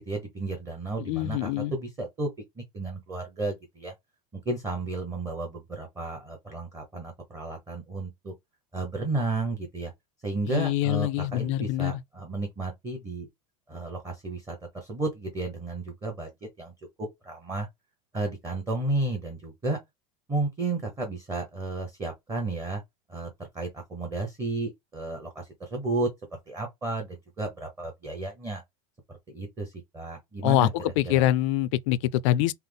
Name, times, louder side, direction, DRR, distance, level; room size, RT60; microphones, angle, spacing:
voice 1, 0.0-2.3 2.6-3.9 4.3-8.3 8.7-9.9 10.2-13.3 13.7-16.7 17.0-17.7 18.1-19.8 20.3-22.8 23.1-26.1 26.5-28.6 29.1-30.7 31.0-31.3, right 2 dB, 15° right, 0.9 m, -33 dB
voice 2, 1.0-1.7 10.5-12.0 30.4-32.5, left 14 dB, 60° left, 0.4 m, -25 dB
5.6 x 2.0 x 3.4 m
supercardioid pair, 165°, 18 cm